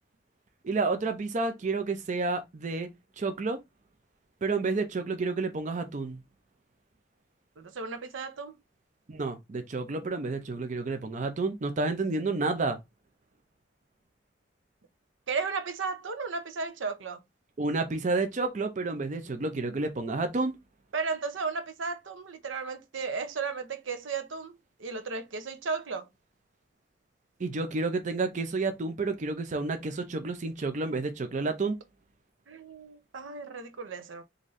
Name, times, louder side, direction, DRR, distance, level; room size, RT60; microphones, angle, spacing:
voice 1, 0.6-2.9 3.2-3.6 4.4-6.2 9.1-12.8 17.6-20.6 27.4-31.8, right 3 dB, 40° right, 0.5 m, -30 dB
voice 2, 7.6-8.5 15.3-17.2 20.9-26.1 32.5-34.2, right 4 dB, 85° right, 0.7 m, -34 dB
3.9 x 2.6 x 3.1 m
head